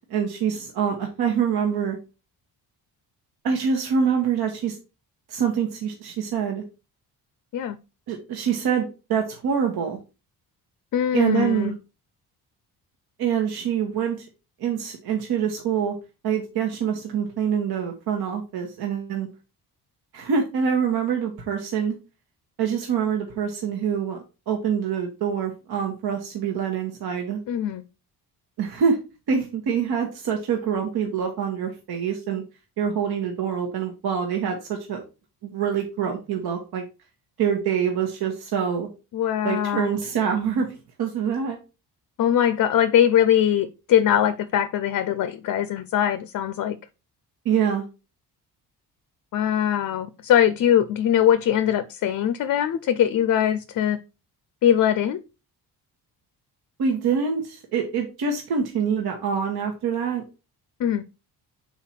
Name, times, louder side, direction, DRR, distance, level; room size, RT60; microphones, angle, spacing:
voice 1, 0.1-2.0 3.4-4.8 5.3-6.6 8.1-10.0 11.1-11.7 13.2-14.2 14.6-15.9 16.2-19.3 20.1-22.0 22.6-24.2 24.5-27.4 28.6-29.0 29.3-32.4 32.8-35.0 35.4-36.8 37.4-38.9 39.4-41.6 47.4-47.9 56.8-60.2, right 7 dB, 70° right, 1.3 m, -25 dB
voice 2, 10.9-11.7 27.5-27.8 39.1-40.0 42.2-46.8 49.3-54.0 54.6-55.2 60.8-61.0, left 10 dB, 50° left, 0.5 m, -21 dB
5.7 x 4.4 x 4.3 m
cardioid pair, 140°, 39 cm